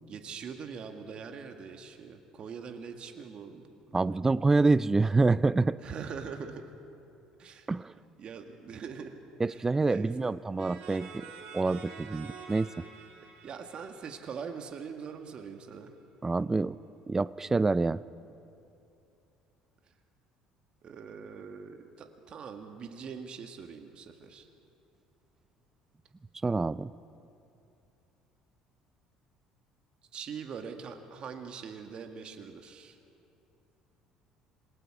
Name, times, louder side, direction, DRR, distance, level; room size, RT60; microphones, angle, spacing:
voice 1, 0.1-4.2 5.8-6.6 7.4-7.7 8.2-9.1 9.5-10.3 13.4-15.9 20.8-24.5 30.1-32.9, right 6 dB, 45° right, 5 dB, 1.7 m, -43 dB
voice 2, 3.9-5.8 7.7-7.9 9.4-11.3 11.5-12.7 16.2-16.8 17.1-18.0 26.4-26.9, right 3 dB, 20° right, 18 dB, 0.4 m, -26 dB
sound 1, 10.6-15.2, right 6 dB, 70° right, 3.3 m, -48 dB
26.5 x 21.5 x 4.8 m, 2.7 s
hypercardioid pair, 60°, 2 cm